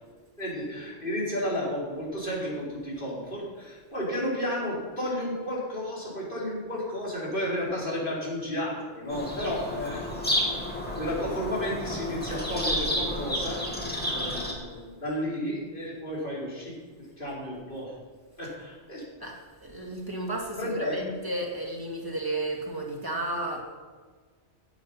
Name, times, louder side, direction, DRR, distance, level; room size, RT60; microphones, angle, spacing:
voice 1, 0.4-10.0 10.3-10.5 11.0-13.6 14.0-16.7 17.0-18.0 18.4-19.0 20.6-21.0, equal, 45° left, -6 dB, 4.8 m, -32 dB
Bird vocalization bird call bird song, 9.1-14.5, left 1 dB, 10° left, 2.7 m, -31 dB
voice 2, 19.2-23.6, right 1 dB, 20° right, -1 dB, 2.3 m, -33 dB
16.0 x 9.4 x 5.8 m, 1.4 s
omnidirectional pair, 1.2 m